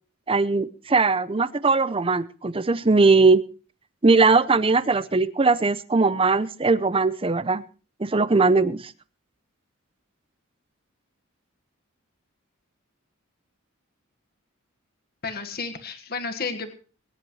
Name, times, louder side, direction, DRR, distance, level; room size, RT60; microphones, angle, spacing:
voice 1, 0.3-3.4 4.0-7.6 8.0-8.9, right 3 dB, 25° right, 15 dB, 0.6 m, -20 dB
voice 2, 15.2-16.7, left 4 dB, 45° left, 6 dB, 1.5 m, -32 dB
22.5 x 10.5 x 3.1 m, 0.37 s
head